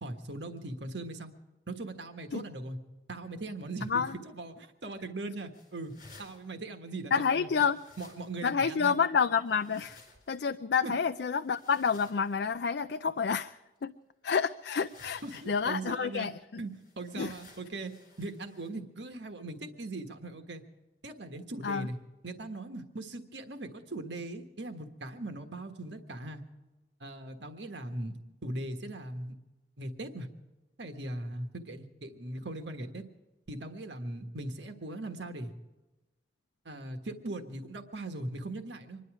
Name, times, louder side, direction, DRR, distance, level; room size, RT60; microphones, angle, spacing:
voice 1, 0.0-1.3 1.7-2.8 3.1-7.5 8.0-9.0 10.8-10.9 15.2-16.3 16.6-20.6 21.0-22.0 22.2-26.4 27.0-28.2 28.4-29.4 29.8-30.3 30.8-33.0 33.5-35.5 36.6-39.0, right 2 dB, 85° right, 6 dB, 1.5 m, -40 dB
voice 2, 3.8-4.2 7.1-7.8 8.4-10.0 10.3-13.9 14.2-16.4 17.2-17.3 21.6-21.9, left 6 dB, 65° left, 10 dB, 0.4 m, -29 dB
sound 1, 5.5-6.5 7.5-8.5 9.4-10.3 11.3-12.4 13.6-13.7 14.6-15.7 16.7-18.7, left 3 dB, 50° left, 4.5 m, -57 dB
25.5 x 11.0 x 4.9 m, 1.1 s
head